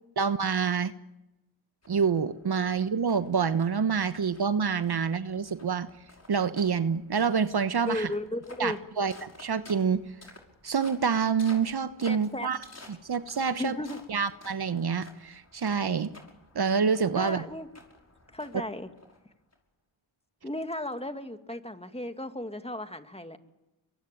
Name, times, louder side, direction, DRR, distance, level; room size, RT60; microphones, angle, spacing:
voice 1, 0.2-0.9 1.9-5.9 6.3-8.1 8.6-10.0 10.6-12.6 12.9-13.8 14.1-16.1 16.5-17.4, right 6 dB, 50° right, 12 dB, 1.2 m, -27 dB
sound 1, 1.8-19.5, left 2 dB, 30° left, 5.6 m, -53 dB
voice 2, 7.9-8.8 12.0-12.5 13.6-14.0 17.2-17.7 18.3-18.9 20.4-23.4, left 1 dB, 10° left, 8 dB, 2.3 m, -35 dB
24.0 x 23.0 x 9.3 m, 0.98 s
supercardioid pair, 45°, 50 cm